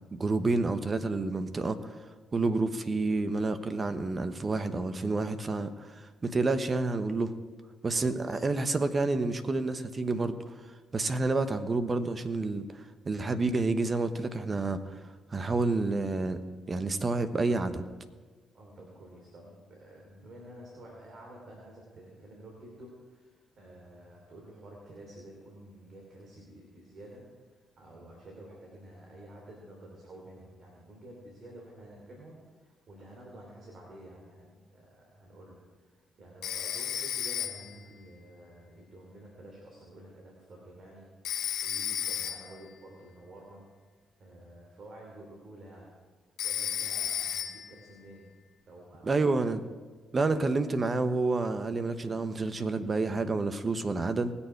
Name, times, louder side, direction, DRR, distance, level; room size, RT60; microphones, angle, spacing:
voice 1, 0.1-2.0 2.3-7.3 7.8-10.5 10.9-15.0 15.3-16.4 16.7-17.9 49.0-49.7 50.1-54.3, right 3 dB, 40° right, 10 dB, 1.1 m, -29 dB
voice 2, 7.9-8.4 18.5-41.1 41.6-43.7 44.2-45.9 46.4-48.4 48.7-49.4, right 1 dB, 60° right, -1 dB, 3.1 m, -50 dB
Telephone, 36.4-37.8 41.2-42.6 46.4-47.8, left 10 dB, 80° left, 0.9 m, -33 dB
19.5 x 7.1 x 4.6 m, 1.4 s
supercardioid pair, 55°, 0 cm